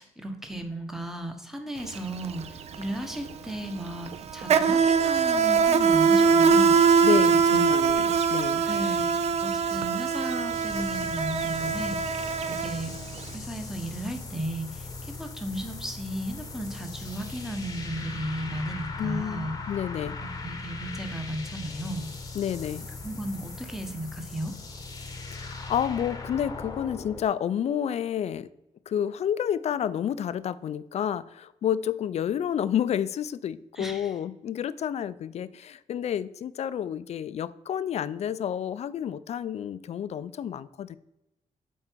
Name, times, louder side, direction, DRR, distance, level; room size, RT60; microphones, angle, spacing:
voice 1, 0.0-7.0 7.5-7.6 8.7-12.9 13.3-19.6 20.2-22.1 23.0-24.5 33.8-34.1, right 1 dB, 5° right, 5 dB, 1.0 m, -35 dB
Insect, 1.8-2.0 2.2-13.2, right 5 dB, 55° right, 0.4 m, -23 dB
voice 2, 7.0-8.6 19.0-20.2 22.3-22.9 25.3-28.5 28.9-41.0, left 9 dB, 55° left, 15 dB, 0.4 m, -30 dB
sound 1, 10.5-27.2, left 3 dB, 25° left, 0.9 m, -39 dB
7.5 x 4.6 x 4.5 m, 0.94 s
wide cardioid pair, 130°, 13 cm